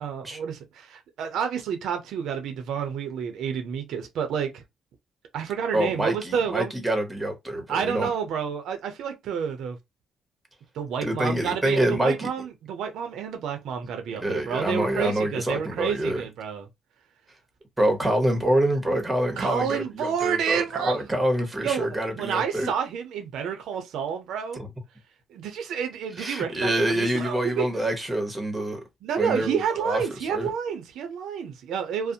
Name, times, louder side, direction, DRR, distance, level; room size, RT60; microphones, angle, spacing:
voice 1, 0.0-4.6 5.3-6.7 7.7-9.8 10.7-16.7 19.4-21.0 21.6-21.9 22.1-24.6 25.3-27.6 29.0-32.1, right 7 dB, 80° right, 0.5 m, -29 dB
voice 2, 5.7-8.1 11.0-12.3 14.1-16.2 17.8-22.7 26.2-28.8 29.2-30.5, right 1 dB, 15° right, 0.9 m, -26 dB
2.4 x 2.0 x 2.7 m
cardioid pair, 90°, 0 cm